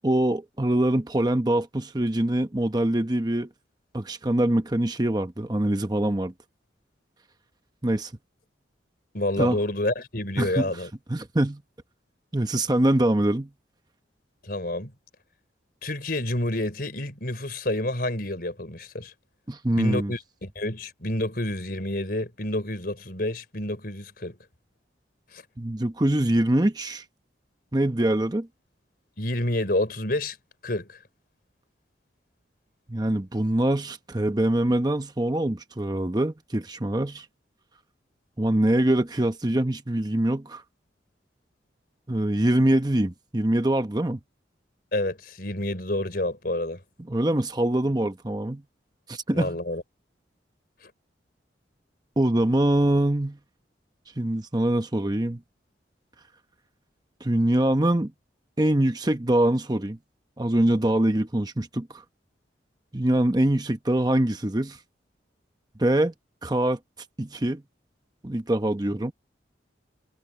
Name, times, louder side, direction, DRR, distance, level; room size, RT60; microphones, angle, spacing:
voice 1, 0.0-3.5 3.9-6.3 7.8-8.1 9.4-9.6 10.4-10.7 11.1-11.6 12.3-13.5 19.5-20.1 25.6-27.0 27.7-28.5 32.9-37.3 38.4-40.6 42.1-44.2 47.1-48.6 49.1-49.6 52.2-53.4 54.2-55.4 57.2-58.1 58.6-60.0 60.4-62.0 62.9-64.8 65.8-66.1 66.4-66.8 67.2-67.6 68.2-69.1, right 1 dB, 20° right, 0.9 m, -24 dB
voice 2, 9.1-10.9 14.4-14.9 15.8-19.1 19.7-24.4 25.3-25.4 29.2-30.4 30.6-31.0 44.9-46.8 49.3-49.8, left 1 dB, 50° left, 4.4 m, -29 dB
head